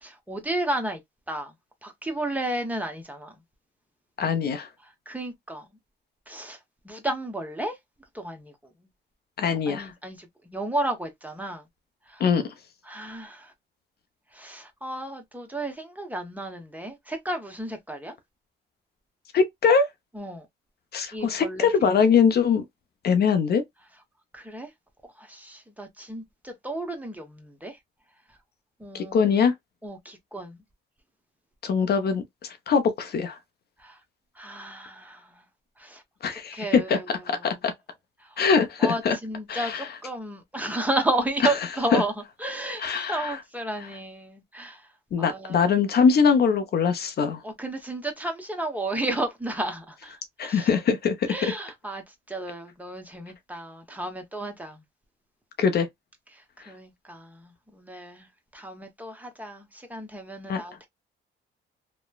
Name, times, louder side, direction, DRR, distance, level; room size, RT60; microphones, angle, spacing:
voice 1, 0.0-1.0 1.3-1.5 1.8-3.3 4.8-5.7 6.3-6.6 6.8-7.8 8.1-8.5 9.7-11.6 12.1-12.2 12.8-13.5 14.3-18.1 20.1-20.5 21.1-21.7 24.3-24.7 25.2-27.8 28.8-29.3 29.8-30.6 33.8-34.0 34.4-35.4 35.8-36.0 36.5-37.6 38.2-38.4 38.8-42.1 42.4-42.8 43.1-44.9 45.2-45.8 47.4-50.8 51.3-54.8 56.3-60.9, right 1 dB, 10° right, 0.8 m, -33 dB
voice 2, 4.2-4.7 9.4-9.9 12.2-12.5 19.3-19.9 20.9-22.6 23.0-23.6 28.9-29.5 31.6-32.2 32.7-33.4 36.2-37.0 37.3-37.7 38.4-39.2 39.5-39.9 41.9-42.0 42.8-43.4 45.1-47.4 50.4-51.5 55.6-55.9 60.5-60.6, left 6 dB, 55° left, 0.6 m, -22 dB
3.0 x 2.1 x 2.2 m
cardioid pair, 90°, 20 cm